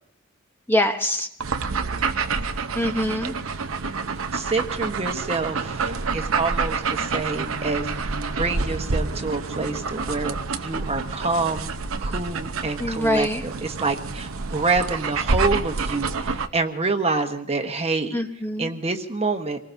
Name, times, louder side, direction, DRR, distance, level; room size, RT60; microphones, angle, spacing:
voice 1, 0.7-1.3 2.7-3.3 12.8-13.4 18.1-18.7, left 1 dB, 10° left, 4 dB, 1.0 m, -24 dB
sound 1, 1.4-16.5, right 4 dB, 70° right, 0.8 m, -28 dB
voice 2, 4.3-11.7 12.0-18.2 18.6-19.6, right 3 dB, 30° right, 5 dB, 1.2 m, -27 dB
26.5 x 19.5 x 2.7 m, 0.72 s
head